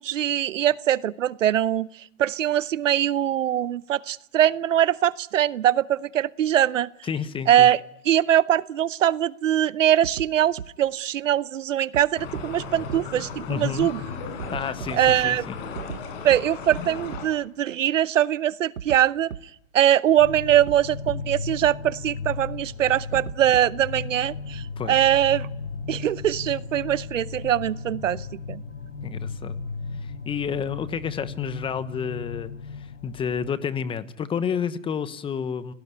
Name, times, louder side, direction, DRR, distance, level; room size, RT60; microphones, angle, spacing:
voice 1, 0.0-1.9 2.2-6.9 7.5-7.8 8.0-14.0 14.9-15.5 16.2-19.3 19.7-25.5 25.9-28.6, right 11 dB, 75° right, 19 dB, 0.9 m, -22 dB
voice 2, 7.0-7.7 13.5-13.9 14.5-15.6 24.8-25.0 29.0-29.6 30.0-35.7, left 7 dB, 15° left, 14 dB, 1.1 m, -30 dB
sound 1, 10.0-10.3 10.6-10.7 11.9-12.0 12.4-12.5 12.9-13.0 14.4-15.2 15.8-16.0 16.3-16.4 16.7-16.8 17.1-17.2 18.8-19.0 19.3-19.4 20.7-20.8 21.1-21.2 21.6-21.7 23.1-23.8, right 8 dB, 90° right, 1.3 m, -35 dB
sound 2, 12.2-17.3, left 5 dB, 45° left, 7.2 m, -36 dB
sound 3, 20.2-33.5, left 4 dB, 80° left, 5.7 m, -35 dB
29.0 x 18.0 x 9.7 m, 0.81 s
hypercardioid pair, 135°, 39 cm